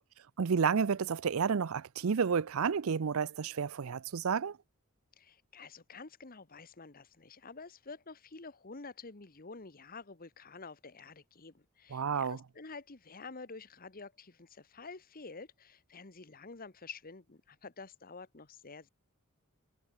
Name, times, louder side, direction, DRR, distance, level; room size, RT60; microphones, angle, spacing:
voice 1, 0.4-4.6 11.9-12.4, right 6 dB, 65° right, 0.5 m, -31 dB
voice 2, 5.2-18.9, left 4 dB, 40° left, 1.3 m, -49 dB
head